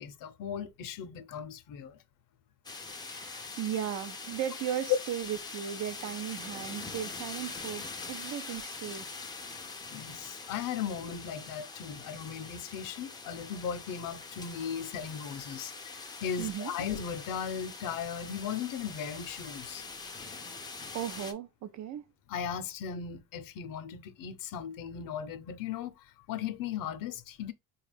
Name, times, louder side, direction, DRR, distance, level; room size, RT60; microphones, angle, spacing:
voice 1, 0.0-2.0 9.9-20.4 22.3-25.9 26.3-27.5, left 8 dB, 60° left, 0.7 m, -37 dB
sound 1, 2.6-21.3, left 4 dB, 10° left, 0.4 m, -43 dB
voice 2, 3.0-9.2 16.4-16.7 20.9-22.0, right 10 dB, 50° right, 0.5 m, -36 dB
4.3 x 2.4 x 3.2 m
cardioid pair, 135°, 36 cm